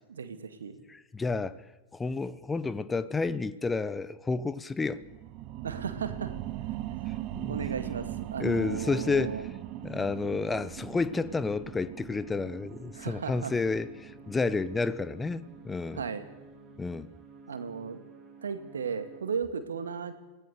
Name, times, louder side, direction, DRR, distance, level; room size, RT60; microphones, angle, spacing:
voice 1, 0.1-0.8 5.6-6.4 7.0-7.1 7.5-9.4 12.9-13.5 16.0-16.3 17.5-18.0 18.4-20.1, right 6 dB, 70° right, 2.1 m, -35 dB
voice 2, 0.9-1.6 1.9-5.0 7.3-7.6 8.4-9.5 9.8-16.0 16.8-17.1, left 4 dB, 10° left, 0.9 m, -30 dB
sound 1, 4.9-16.1 16.5-16.6, right 15 dB, 40° right, 1.1 m, -40 dB
sound 2, 7.7-19.2, right 3 dB, 20° right, 4.7 m, -52 dB
26.5 x 17.5 x 6.8 m
figure-of-eight pair, 90°, 0 cm